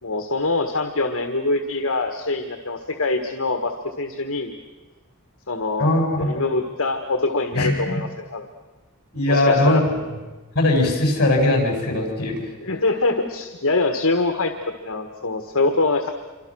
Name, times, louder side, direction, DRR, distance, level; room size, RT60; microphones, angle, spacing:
voice 1, 0.0-4.5 5.5-8.5 9.3-9.8 12.6-14.5 14.8-16.1, left 3 dB, 65° left, 5 dB, 1.6 m, -24 dB
voice 2, 5.8-6.3 7.5-8.0 9.1-9.8 10.5-12.4, left 1 dB, 50° left, 1 dB, 7.3 m, -19 dB
27.5 x 25.0 x 6.3 m, 1.2 s
head